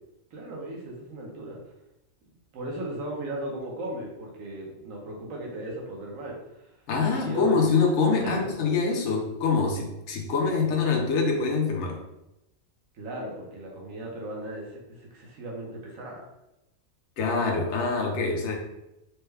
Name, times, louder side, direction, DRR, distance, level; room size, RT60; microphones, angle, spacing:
voice 1, 0.3-1.6 2.5-6.7 7.1-7.5 8.2-8.5 12.9-16.2, right 1 dB, 70° right, -2 dB, 1.2 m, -36 dB
voice 2, 6.9-12.0 17.2-18.5, left 4 dB, 60° left, 1 dB, 0.9 m, -25 dB
4.6 x 2.2 x 3.3 m, 0.91 s
omnidirectional pair, 1.4 m